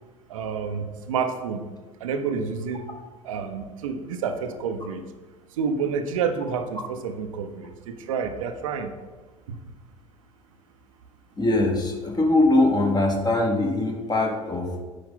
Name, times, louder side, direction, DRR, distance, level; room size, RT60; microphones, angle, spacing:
voice 1, 0.3-1.6 2.0-2.9 3.2-5.0 5.6-8.9 9.5-9.6, right 6 dB, 70° right, 7 dB, 0.7 m, -29 dB
voice 2, 11.4-14.8, left 2 dB, 25° left, 2 dB, 1.4 m, -22 dB
8.3 x 5.2 x 3.8 m, 1.3 s
figure-of-eight pair, 65°, 18 cm